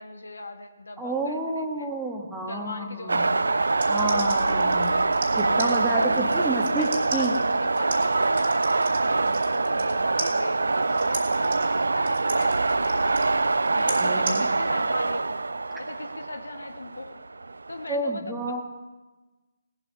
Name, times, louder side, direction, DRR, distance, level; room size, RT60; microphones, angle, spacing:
voice 1, 0.0-1.9 2.5-4.1 4.9-5.4 5.9-8.7 9.0-13.4 13.7-15.4 15.8-17.2 17.7-18.6, left 2 dB, 65° left, 6 dB, 1.4 m, -39 dB
voice 2, 1.0-3.3 3.9-4.9 5.4-7.4 14.0-14.5 17.9-18.6, right 1 dB, 5° right, 0 dB, 1.4 m, -30 dB
sound 1, 3.1-17.9, right 3 dB, 65° right, 0.4 m, -24 dB
sound 2, 3.7-9.9 10.2-14.4, right 4 dB, 40° right, 2.2 m, -37 dB
18.0 x 7.6 x 5.4 m, 1.2 s
figure-of-eight pair, 140°, 0 cm